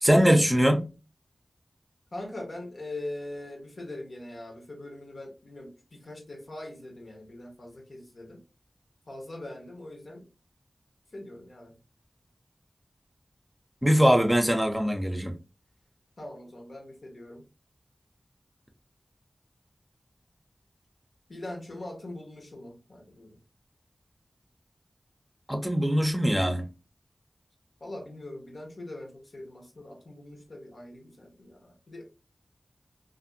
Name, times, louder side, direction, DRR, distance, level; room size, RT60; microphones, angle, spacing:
voice 1, 0.0-0.9 13.8-15.3 25.5-26.7, equal, 15° right, 0.6 m, -22 dB
voice 2, 2.1-8.4 9.1-10.3 11.1-11.8 16.2-17.5 21.3-23.4 27.8-32.0, left 1 dB, 70° left, 0.9 m, -42 dB
2.6 x 2.5 x 2.6 m
wide cardioid pair, 55°, 0 cm